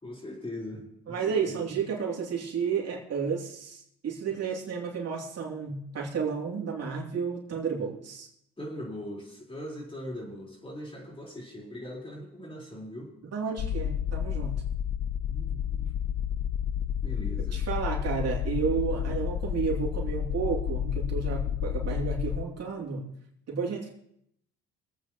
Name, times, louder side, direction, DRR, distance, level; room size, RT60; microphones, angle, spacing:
voice 1, 0.0-1.7 4.3-4.4 8.6-13.1 15.3-15.9 17.0-17.6 18.9-19.2, equal, 20° left, -3 dB, 4.2 m, -41 dB
voice 2, 1.1-8.3 13.2-14.6 17.5-23.1 23.5-23.9, right 6 dB, 55° right, -2 dB, 2.9 m, -32 dB
sound 1, 13.6-22.4, left 9 dB, 45° left, 0.5 m, -30 dB
24.5 x 8.5 x 3.0 m, 0.75 s
cardioid pair, 90°, 30 cm